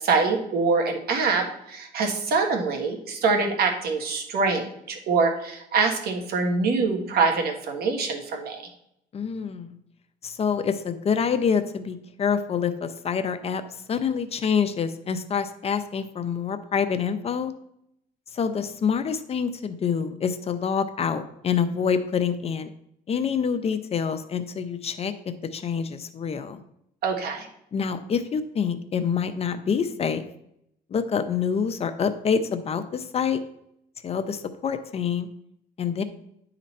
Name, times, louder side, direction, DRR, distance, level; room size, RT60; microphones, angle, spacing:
voice 1, 0.0-8.6 27.0-27.5, right 4 dB, 65° right, 4 dB, 1.6 m, -24 dB
voice 2, 9.1-9.7 10.2-13.6 13.9-17.5 18.3-22.7 23.1-25.1 25.5-26.6 27.7-30.2 30.9-33.4 34.0-35.3 35.8-36.0, left 6 dB, 35° left, 10 dB, 0.6 m, -26 dB
10.0 x 3.9 x 4.3 m, 0.76 s
cardioid pair, 110°, 17 cm